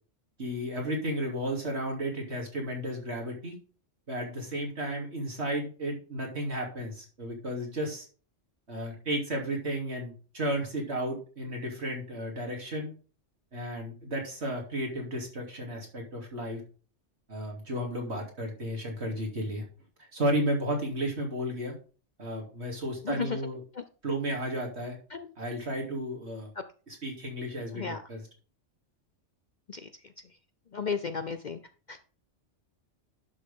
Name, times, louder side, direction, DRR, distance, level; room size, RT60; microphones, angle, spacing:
voice 1, 0.4-3.6 4.1-8.0 8.7-12.9 13.5-16.6 17.3-19.6 20.1-21.7 22.2-23.6 24.0-25.0 25.4-26.5 26.9-28.3, right 1 dB, 60° right, 0 dB, 3.4 m, -33 dB
voice 2, 23.0-23.4 23.7-23.8 25.1-25.3 27.7-28.0 29.7-29.9 30.7-31.6 31.9-32.0, left 5 dB, 45° left, 10 dB, 0.7 m, -33 dB
11.0 x 6.5 x 3.7 m, 0.37 s
omnidirectional pair, 1.3 m